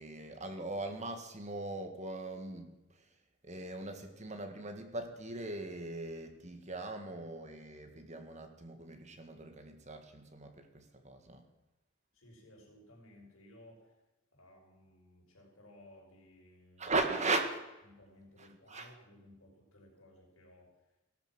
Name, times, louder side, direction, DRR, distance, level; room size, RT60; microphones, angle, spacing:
voice 1, 0.0-3.1 3.4-11.4 16.8-17.6 18.4-18.9, right 2 dB, 35° right, 6 dB, 1.8 m, -39 dB
voice 2, 12.1-13.9 14.3-16.9 17.9-20.7, left 1 dB, 75° left, 0 dB, 5.9 m, -58 dB
17.0 x 13.0 x 6.2 m, 1.0 s
head